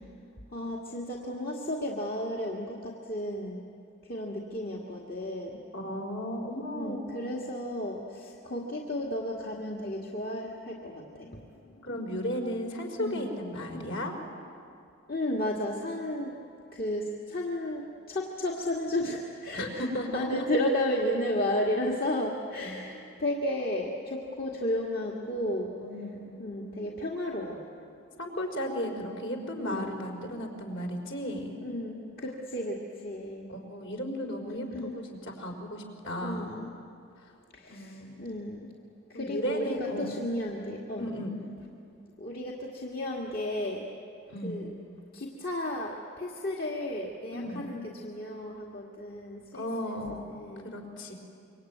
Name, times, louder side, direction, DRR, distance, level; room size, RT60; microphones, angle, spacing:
voice 1, 0.5-3.6 4.1-5.6 6.7-11.4 13.0-13.3 13.7-13.9 15.1-16.3 16.7-17.8 18.1-19.8 20.1-25.7 26.4-27.6 29.6-29.9 31.6-33.5 34.7-35.0 36.2-36.7 37.5-38.7 39.1-41.1 42.2-43.9 44.4-44.7 45.1-50.7, left 1 dB, 45° left, -2 dB, 2.1 m, -33 dB
voice 2, 5.7-7.4 11.8-14.1 19.5-20.5 22.6-22.8 25.8-26.3 28.2-31.6 33.5-36.6 37.7-38.3 39.1-40.2 41.0-41.4 44.3-44.6 47.3-47.7 49.5-50.3 50.6-51.1, equal, 65° left, 2 dB, 4.6 m, -35 dB
26.5 x 24.5 x 9.4 m, 2.6 s
head